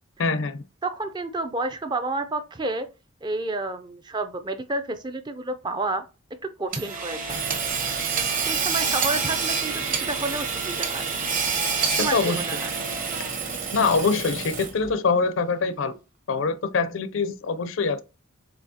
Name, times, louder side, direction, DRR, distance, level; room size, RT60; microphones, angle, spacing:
voice 1, 0.2-0.6 11.9-12.4 13.7-15.9 16.3-18.0, left 4 dB, 65° left, 0.5 m, -24 dB
voice 2, 0.8-2.9 3.2-6.0 6.6-7.4 8.5-9.7 10.1-11.1 12.0-12.7, right 2 dB, 20° right, 0.4 m, -30 dB
Hammer / Sawing, 6.7-14.9, right 5 dB, 40° right, 0.9 m, -27 dB
6.9 x 2.7 x 2.7 m
head